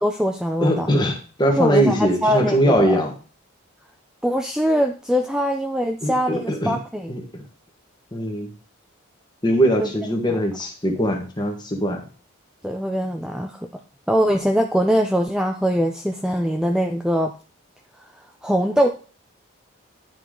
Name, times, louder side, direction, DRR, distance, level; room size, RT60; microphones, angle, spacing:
voice 1, 0.0-0.9 1.5-3.0 4.2-7.1 9.8-9.9 10.3-10.4 12.6-13.7 14.1-17.3 18.1-18.9, equal, 5° right, 3 dB, 0.4 m, -22 dB
voice 2, 0.6-3.1 6.0-6.8 7.1-7.4 8.1-8.5 9.4-12.0, equal, 20° left, 3 dB, 1.4 m, -21 dB
10.5 x 4.8 x 3.8 m, 0.37 s
head